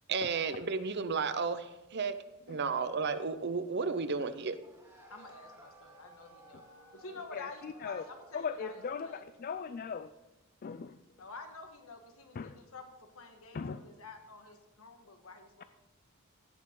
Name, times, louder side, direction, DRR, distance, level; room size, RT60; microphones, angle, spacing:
voice 1, 0.1-2.1 2.5-4.6, right 5 dB, 50° right, 12 dB, 0.6 m, -33 dB
sound 1, 4.5-9.4, right 1 dB, 10° right, 2.2 m, -56 dB
voice 2, 5.1-6.6 6.9-9.2 11.2-15.6, left 3 dB, 75° left, 5 dB, 1.5 m, -49 dB
voice 3, 7.3-8.0 8.3-10.1 10.6-11.0 12.4-12.5 13.5-13.8, left 6 dB, 40° left, 11 dB, 0.3 m, -38 dB
16.5 x 6.3 x 3.8 m, 1.0 s
head